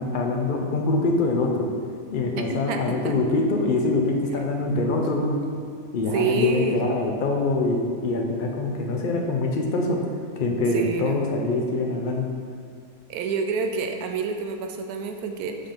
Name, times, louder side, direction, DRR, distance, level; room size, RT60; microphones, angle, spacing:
voice 1, 0.0-1.7 2.1-5.4 5.9-10.0 10.4-12.3, left 2 dB, 70° left, 1 dB, 0.4 m, -24 dB
voice 2, 2.5-3.1 6.1-6.8 10.7-11.3 13.1-15.6, right 5 dB, 85° right, 5 dB, 1.1 m, -28 dB
5.0 x 3.5 x 5.6 m, 2.2 s
omnidirectional pair, 1.5 m